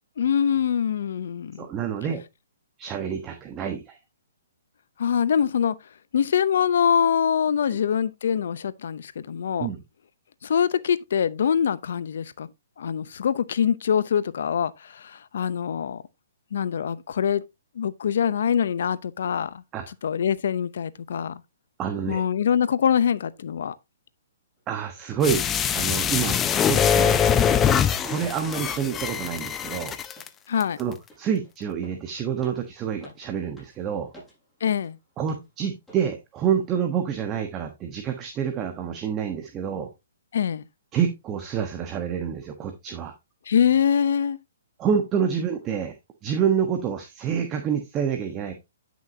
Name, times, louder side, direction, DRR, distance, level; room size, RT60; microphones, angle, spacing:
voice 1, 0.2-1.7 5.0-5.8 6.1-9.7 10.4-12.5 12.8-16.0 16.5-17.4 17.7-21.4 22.1-23.7 30.5-30.8 34.6-35.0 40.3-40.6 43.5-44.4, left 8 dB, 65° left, 0.7 m, -24 dB
voice 2, 1.6-2.2 2.8-4.0 7.7-7.8 9.6-9.8 19.7-19.8 21.8-22.2 24.7-25.4 25.7-27.2 28.0-29.9 30.8-34.1 35.2-39.9 40.9-43.1 44.8-45.9 46.2-48.5, right 7 dB, 20° right, 1.2 m, -27 dB
sound 1, 24.6-24.7 25.2-25.4 25.7-25.9 26.2-26.4 26.7-28.7 29.0-29.3 29.6-34.9 35.3-35.5 35.9-36.1 36.5-36.6, equal, ahead, 6.4 m, -50 dB
sound 2, 25.2-30.3 30.6-30.7, left 8 dB, 15° left, 0.6 m, -23 dB
10.5 x 6.2 x 2.8 m
hypercardioid pair, 145°, 0 cm